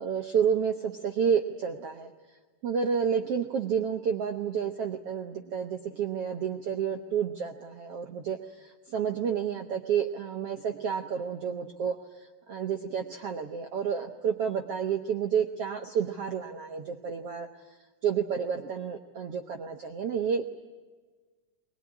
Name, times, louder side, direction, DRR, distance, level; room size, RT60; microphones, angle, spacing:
voice 1, 0.0-2.1 2.6-17.5 18.0-20.5, right 7 dB, 70° right, 5 dB, 1.4 m, -30 dB
21.5 x 21.5 x 9.7 m, 1.4 s
omnidirectional pair, 4.3 m